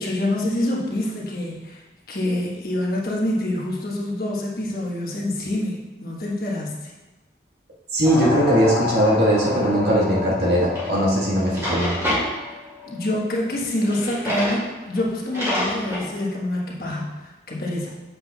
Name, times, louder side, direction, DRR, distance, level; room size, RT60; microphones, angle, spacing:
voice 1, 0.0-6.9 12.8-17.9, left 1 dB, 55° left, -3 dB, 1.3 m, -26 dB
voice 2, 7.9-12.0, equal, 65° right, -5 dB, 1.7 m, -20 dB
sound 1, 8.0-13.0, left 3 dB, 5° left, 1.6 m, -30 dB
Drawer open or close, 10.7-10.9 11.4-12.2 13.8-14.6 14.9-15.0 15.3-16.0, left 1 dB, 15° right, 2.3 m, -26 dB
7.6 x 7.2 x 2.4 m, 1.2 s
head